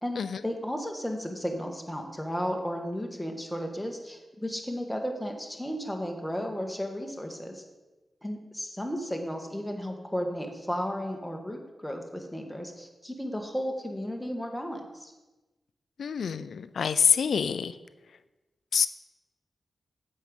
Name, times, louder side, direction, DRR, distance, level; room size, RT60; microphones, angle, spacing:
voice 1, 0.0-7.6 8.2-15.1, equal, 5° left, 2 dB, 1.8 m, -34 dB
voice 2, 16.0-17.7 18.7-18.9, left 6 dB, 80° left, 13 dB, 0.4 m, -26 dB
8.2 x 6.4 x 5.4 m, 1.1 s
cardioid pair, 45°, 0 cm